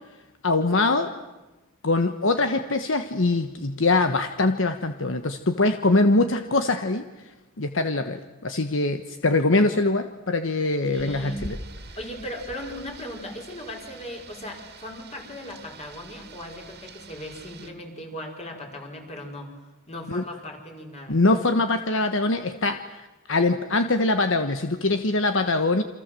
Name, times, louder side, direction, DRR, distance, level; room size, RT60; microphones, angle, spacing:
voice 1, 0.4-1.1 1.8-7.0 7.6-11.6 20.1-20.2 21.1-23.0 23.3-25.8, left 2 dB, 70° left, 8 dB, 1.3 m, -23 dB
voice 2, 10.9-11.5 12.0-21.2, left 1 dB, 30° left, 2 dB, 5.4 m, -38 dB
Rain, 10.9-17.7, right 2 dB, 55° right, 2.5 m, -44 dB
28.5 x 26.5 x 7.7 m, 1.1 s
head